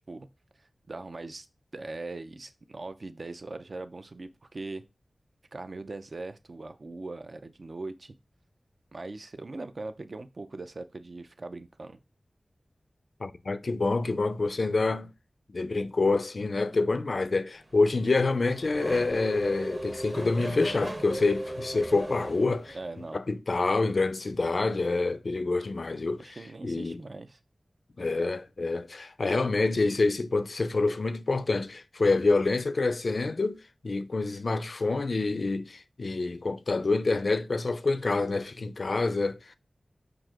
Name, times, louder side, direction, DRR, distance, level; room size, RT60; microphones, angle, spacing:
voice 1, 0.6-1.5 1.7-4.8 5.5-8.1 8.9-12.0 22.7-23.2 26.2-27.4, right 2 dB, 55° right, 0.3 m, -40 dB
voice 2, 13.2-15.1 15.5-22.8 23.1-26.4 26.6-27.0 28.0-39.6, left 3 dB, 60° left, 0.3 m, -27 dB
Race car auto racing / Accelerating revving vroom, 17.6-23.1, right 1 dB, 35° right, 1.0 m, -37 dB
5.9 x 2.4 x 2.3 m
wide cardioid pair, 80°, 0 cm